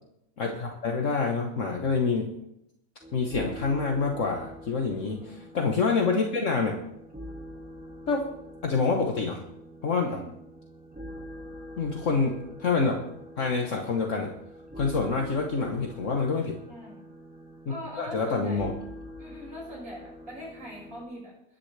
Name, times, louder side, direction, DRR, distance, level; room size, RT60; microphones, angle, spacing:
voice 1, 0.4-2.3 3.1-6.8 8.1-8.3 8.6-9.4 9.8-10.2 11.8-13.0 13.4-14.3 14.8-16.6 17.7-18.7, left 4 dB, 55° left, 1 dB, 1.5 m, -27 dB
sound 1, 3.0-21.0, equal, 5° right, 2.1 m, -45 dB
voice 2, 9.9-10.3 16.7-17.0 17.7-18.8 19.2-21.3, equal, 60° right, -3 dB, 6.3 m, -42 dB
22.5 x 10.0 x 3.3 m, 0.81 s
omnidirectional pair, 1.6 m